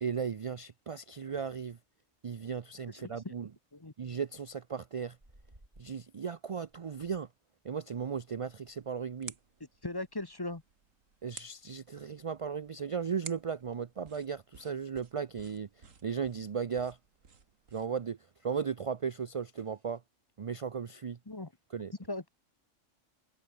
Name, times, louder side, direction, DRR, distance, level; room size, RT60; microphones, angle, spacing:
voice 1, 0.0-1.8 2.2-3.5 4.0-5.2 5.8-7.3 7.6-9.3 11.2-17.0 17.7-18.2 18.4-20.0 20.4-21.2 21.7-21.9, right 6 dB, 55° right, 0.3 m, -36 dB
sound 1, 0.7-20.0, right 1 dB, 30° right, 5.7 m, -70 dB
voice 2, 2.9-3.4 3.7-3.9 9.8-10.6 21.3-21.5 22.1-22.3, left 2 dB, 20° left, 1.1 m, -38 dB
sound 2, 8.1-18.1, right 5 dB, 90° right, 2.4 m, -54 dB
omnidirectional pair, 1.3 m